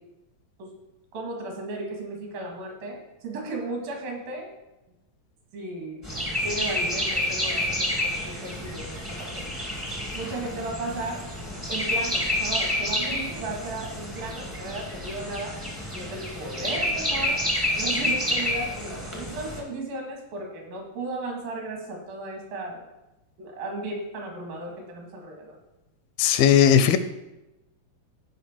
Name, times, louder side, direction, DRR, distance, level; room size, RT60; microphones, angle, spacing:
voice 1, 1.1-4.5 5.5-6.1 6.4-9.5 10.1-11.2 11.7-15.6 15.9-17.4 17.7-22.8 23.4-25.6, right 2 dB, 75° right, 1 dB, 3.7 m, -35 dB
sound 1, 6.0-19.6, left 1 dB, 20° right, 0.4 m, -29 dB
voice 2, 26.2-27.0, left 9 dB, 85° left, 11 dB, 2.4 m, -17 dB
13.5 x 5.2 x 4.4 m, 0.96 s
omnidirectional pair, 4.2 m